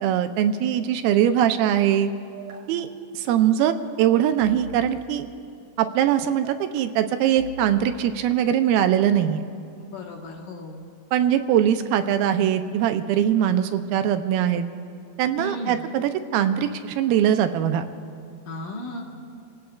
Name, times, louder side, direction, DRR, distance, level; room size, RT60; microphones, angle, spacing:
voice 1, 0.0-2.1 2.7-2.9 3.1-5.3 5.8-9.4 11.1-14.7 15.2-17.8, right 10 dB, 90° right, 8 dB, 2.5 m, -21 dB
sound 1, 2.3-2.8 4.4-4.9 6.4-6.8 7.4-7.9, right 4 dB, 60° right, 2.4 m, -41 dB
voice 2, 9.8-10.8 15.4-15.8 18.5-19.0, left 1 dB, 65° left, 0 dB, 2.8 m, -35 dB
29.5 x 17.0 x 2.4 m, 2.3 s
omnidirectional pair, 4.3 m